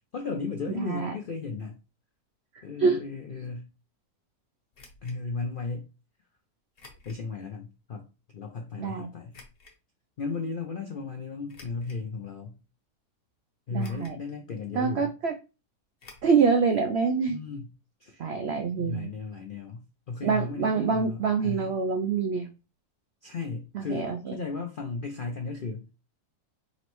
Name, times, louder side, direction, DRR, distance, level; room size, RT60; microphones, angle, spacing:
voice 1, 0.1-1.8 2.6-3.7 5.0-5.9 7.0-8.1 8.3-9.3 10.2-12.6 13.7-15.1 17.3-17.7 18.0-18.3 18.8-21.7 23.2-25.9, left 4 dB, 70° left, 0.5 m, -35 dB
voice 2, 0.8-1.1 2.8-3.0 8.8-9.1 13.7-14.2 14.8-15.4 16.2-17.4 18.2-19.1 20.2-22.5 23.7-24.4, right 5 dB, 80° right, 0.5 m, -26 dB
sound 1, 4.7-5.2 6.8-7.3 7.8-7.9 9.3-9.8 11.5-12.1 12.7-12.8 13.8-14.3 14.5-14.6 16.0-16.4 16.7-16.8 17.1-17.2, left 3 dB, 45° left, 1.0 m, -51 dB
5.3 x 3.0 x 3.0 m
omnidirectional pair, 1.7 m